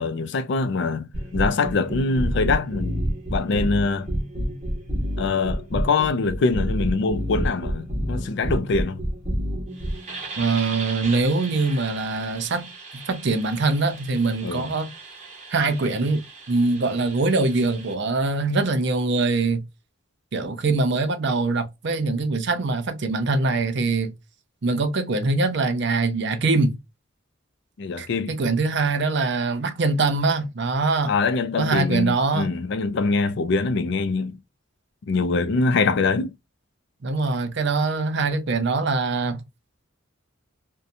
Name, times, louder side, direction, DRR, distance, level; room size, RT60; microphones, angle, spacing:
voice 1, 0.0-3.0 3.3-4.1 5.2-9.0 14.4-14.7 27.8-28.4 31.1-34.4 35.1-36.3, left 4 dB, 55° left, 0.4 m, -24 dB
sound 1, 1.1-17.9, equal, 35° right, 0.9 m, -30 dB
voice 2, 10.4-14.9 15.5-19.6 20.3-24.1 24.6-26.8 28.0-31.1 31.6-32.5 37.0-39.4, right 3 dB, 55° right, 0.6 m, -23 dB
2.7 x 2.2 x 2.5 m
head